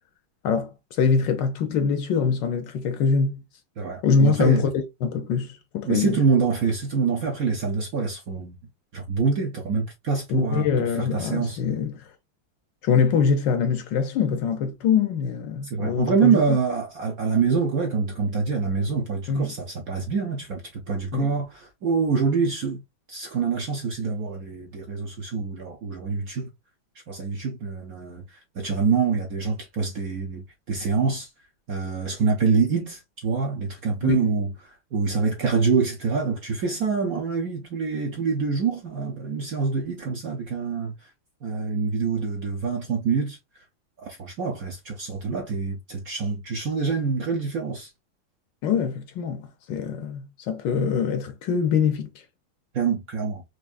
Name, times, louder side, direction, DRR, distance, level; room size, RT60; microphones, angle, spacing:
voice 1, 0.4-3.4 4.0-6.2 10.3-12.1 12.8-16.6 19.3-19.5 21.1-21.3 34.0-34.2 48.6-52.1, left 6 dB, 70° left, 1.1 m, -24 dB
voice 2, 3.8-4.7 5.8-8.6 8.9-11.6 15.6-22.8 23.1-26.5 27.1-31.3 31.7-41.1 41.4-43.4 44.0-47.9 52.7-53.4, right 5 dB, 65° right, 0.9 m, -25 dB
4.7 x 2.6 x 2.4 m
omnidirectional pair, 2.3 m